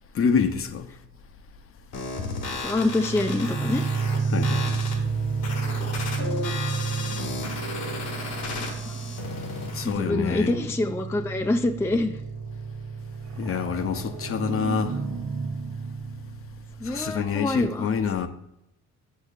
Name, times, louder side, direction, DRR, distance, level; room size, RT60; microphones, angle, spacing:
voice 1, 0.1-0.9 4.3-4.8 9.7-10.5 13.4-15.0 16.8-18.3, left 6 dB, 45° left, 0.6 m, -26 dB
sound 1, 1.9-9.9, left 3 dB, 85° left, 1.4 m, -34 dB
voice 2, 2.6-3.8 8.6-9.0 9.8-12.2 16.8-17.9, left 2 dB, 10° left, 0.3 m, -26 dB
sound 2, 2.6-17.2, right 5 dB, 90° right, 0.8 m, -31 dB
6.4 x 6.2 x 2.5 m
cardioid pair, 90°, 30 cm